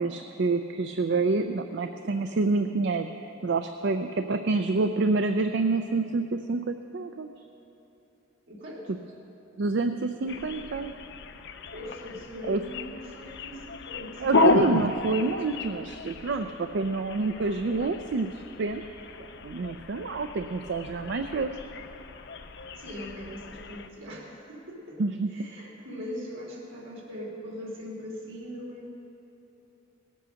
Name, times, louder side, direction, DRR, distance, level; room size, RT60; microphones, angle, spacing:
voice 1, 0.0-3.1 3.4-7.3 9.6-10.9 12.5-12.6 14.2-18.8 19.4-21.5 25.0-25.3, right 3 dB, 60° right, 7 dB, 0.5 m, -27 dB
voice 2, 8.5-8.9 11.7-14.2 22.8-25.0 25.3-28.9, equal, 80° right, -3 dB, 3.2 m, -40 dB
sound 1, 10.3-23.9, left 3 dB, 65° left, 0.6 m, -32 dB
18.5 x 8.4 x 6.4 m, 2.9 s
head